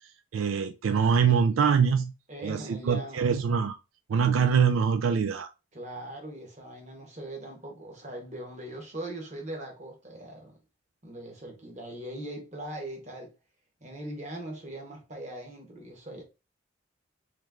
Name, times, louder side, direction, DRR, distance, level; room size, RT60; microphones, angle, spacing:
voice 1, 0.3-2.1 2.4-3.8 4.1-5.5, right 6 dB, 85° right, 0.4 m, -24 dB
voice 2, 2.3-3.2 5.7-10.5 11.0-13.3 13.8-16.2, right 1 dB, 35° right, 1.4 m, -40 dB
3.2 x 3.2 x 3.5 m
head